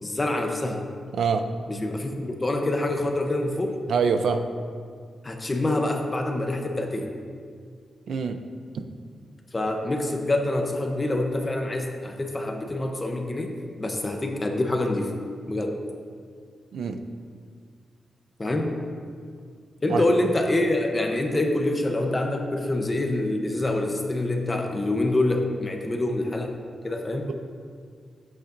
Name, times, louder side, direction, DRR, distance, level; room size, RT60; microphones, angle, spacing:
voice 1, 0.0-0.8 1.7-3.8 5.2-7.1 9.5-15.1 15.5-15.8 18.4-18.7 19.8-26.5 26.8-27.3, left 1 dB, 20° left, 3 dB, 0.8 m, -26 dB
voice 2, 1.1-1.5 3.9-4.4 8.1-8.4 8.7-8.9 16.7-17.0 19.9-20.0, right 5 dB, 85° right, 8 dB, 0.5 m, -24 dB
13.0 x 8.3 x 2.6 m, 2.1 s
wide cardioid pair, 175°, 0 cm